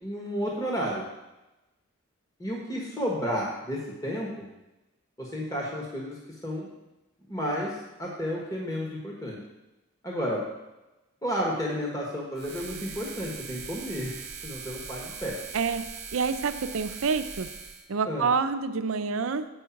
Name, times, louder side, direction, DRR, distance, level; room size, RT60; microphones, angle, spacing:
voice 1, 0.0-1.0 2.4-4.5 5.2-6.7 7.3-7.7 8.0-9.4 10.0-10.4 11.2-14.1 14.4-15.3 18.0-18.3, equal, 15° left, -3 dB, 1.3 m, -32 dB
sound 1, 12.3-17.9, right 6 dB, 50° right, 1.0 m, -41 dB
voice 2, 15.5-17.5 17.9-19.5, right 5 dB, 80° right, 11 dB, 0.5 m, -28 dB
8.2 x 5.5 x 5.8 m, 1.0 s
head